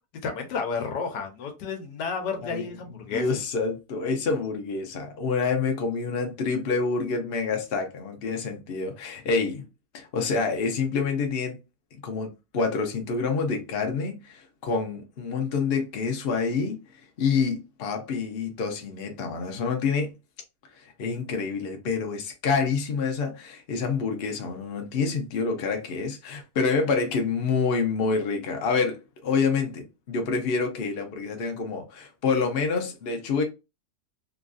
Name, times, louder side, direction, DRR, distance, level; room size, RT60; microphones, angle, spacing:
voice 1, 0.2-3.2, left 5 dB, 80° left, 1.3 m, -31 dB
voice 2, 3.1-9.6 9.9-11.6 11.9-20.1 20.7-33.4, left 4 dB, 60° left, 0.6 m, -27 dB
3.0 x 2.5 x 2.5 m
omnidirectional pair, 1.8 m